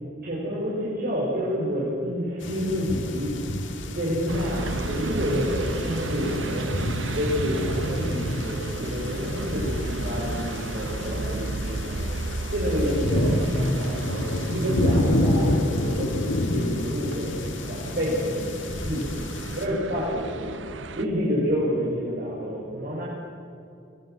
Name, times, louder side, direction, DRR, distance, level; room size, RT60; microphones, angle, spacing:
voice 1, 0.2-3.3 3.7-6.7 7.1-12.1 12.5-17.3 17.7-19.1 19.6-20.5 20.9-23.0, equal, 50° right, -7 dB, 6.4 m, -28 dB
sound 1, 2.4-19.7, left 1 dB, 80° left, 2.2 m, -29 dB
sound 2, 4.3-21.1, right 2 dB, 75° right, 1.0 m, -33 dB
25.0 x 21.0 x 7.9 m, 2.6 s
head